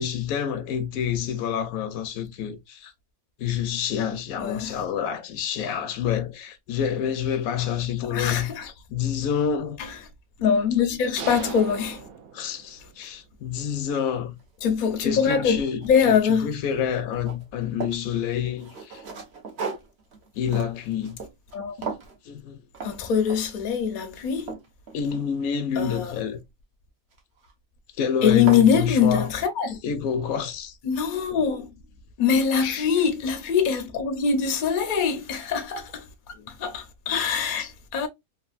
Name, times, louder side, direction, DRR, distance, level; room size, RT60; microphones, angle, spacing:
voice 1, 0.0-2.9 3.4-9.8 12.3-14.3 15.0-19.0 20.4-21.2 22.3-22.6 24.9-26.4 28.0-29.3 29.8-30.8 31.3-31.4 32.6-32.9 36.3-36.5 37.1-37.3 37.6-37.7, left 8 dB, 75° left, 1.0 m, -28 dB
voice 2, 4.4-4.7 8.0-8.7 9.8-10.0 10.4-12.0 14.6-16.5 21.5-21.8 22.8-24.5 25.8-26.1 28.2-29.8 30.8-31.7 32.2-36.1 36.5-38.1, left 7 dB, 50° left, 0.6 m, -23 dB
sound 1, 11.2-13.0, right 7 dB, 75° right, 1.1 m, -37 dB
sound 2, 14.4-14.5 15.0-16.4 16.7-18.1 18.6-21.6 21.8-22.2 22.7-23.0 23.3-23.6 24.1-25.6 27.1-27.5 28.0-28.1 28.3-28.7, right 5 dB, 55° right, 1.0 m, -37 dB
3.2 x 2.4 x 2.3 m
omnidirectional pair, 1.5 m